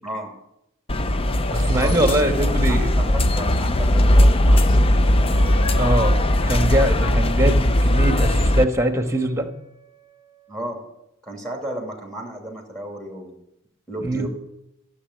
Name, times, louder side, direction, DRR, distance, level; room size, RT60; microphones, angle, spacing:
voice 1, 0.0-0.3 1.7-4.9 10.5-10.8 11.2-13.4 13.9-14.3, right 1 dB, 5° left, 1 dB, 2.6 m, -33 dB
sound 1, 0.9-8.6, left 1 dB, 25° left, 0.5 m, -18 dB
voice 2, 1.5-3.2 5.7-6.1 6.5-9.5 14.0-14.3, right 1 dB, 15° right, 7 dB, 1.4 m, -22 dB
sound 2, 1.5-2.4, right 5 dB, 75° right, 0.5 m, -31 dB
Wind instrument woodwind instrument, 5.2-10.9, left 4 dB, 65° left, 4.4 m, -41 dB
14.0 x 7.3 x 8.0 m, 0.83 s
head